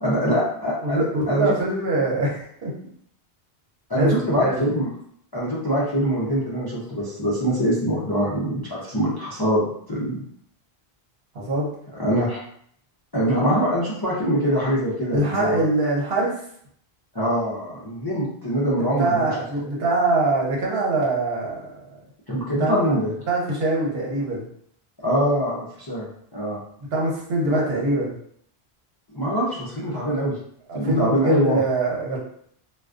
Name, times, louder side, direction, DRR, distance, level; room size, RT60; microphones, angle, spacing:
voice 1, 0.0-1.5 3.9-4.9 5.3-10.2 11.9-12.4 13.1-15.7 17.1-19.3 22.3-23.1 25.0-26.0 26.3-26.6 27.5-27.6 29.1-30.4 30.7-31.6, equal, 35° left, -6 dB, 0.4 m, -23 dB
voice 2, 0.8-2.7 4.0-4.7 11.3-11.7 15.1-16.4 19.0-21.7 22.6-23.0 23.3-24.5 26.9-28.1 30.7-32.2, right 2 dB, 70° right, -3 dB, 1.0 m, -23 dB
2.3 x 2.3 x 2.4 m, 0.64 s
omnidirectional pair, 1.1 m